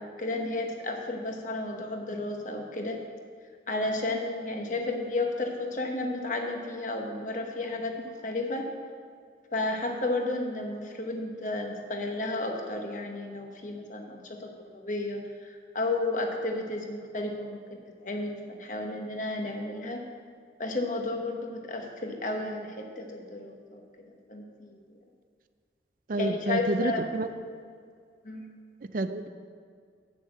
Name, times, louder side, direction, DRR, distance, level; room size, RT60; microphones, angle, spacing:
voice 1, 0.0-3.0 3.7-8.7 9.5-17.6 18.0-20.0 20.6-23.8 24.3-24.8 26.2-27.1 28.2-28.5, left 2 dB, 45° left, 3 dB, 1.1 m, -32 dB
voice 2, 26.1-27.3 28.9-29.3, right 2 dB, 45° right, 10 dB, 0.4 m, -29 dB
8.8 x 6.5 x 7.5 m, 2.2 s
head